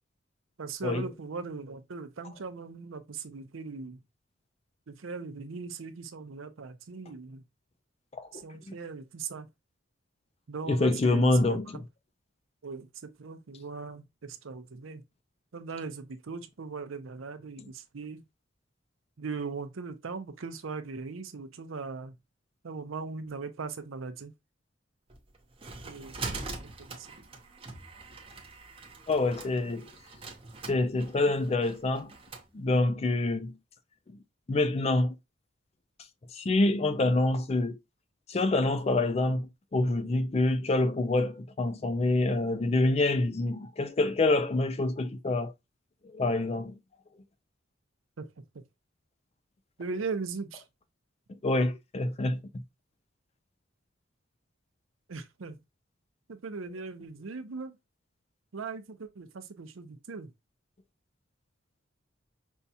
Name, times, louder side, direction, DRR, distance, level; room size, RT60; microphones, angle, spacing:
voice 1, 0.6-4.0 4.9-7.4 8.3-9.5 10.5-11.8 12.6-15.0 15.5-18.2 19.2-22.1 22.6-24.3 25.8-27.1 48.2-48.3 48.5-48.6 49.8-50.6 55.1-55.6 56.3-57.8 58.5-60.3, right 4 dB, 90° right, 0.6 m, -39 dB
voice 2, 10.7-11.8 29.1-29.9 30.7-32.1 32.5-33.5 34.5-35.1 36.3-37.8 38.3-45.5 46.1-46.7 51.4-52.6, left 2 dB, 30° left, 0.4 m, -26 dB
sound 1, 25.1-32.5, right 3 dB, 30° right, 0.7 m, -43 dB
5.4 x 2.3 x 2.7 m
head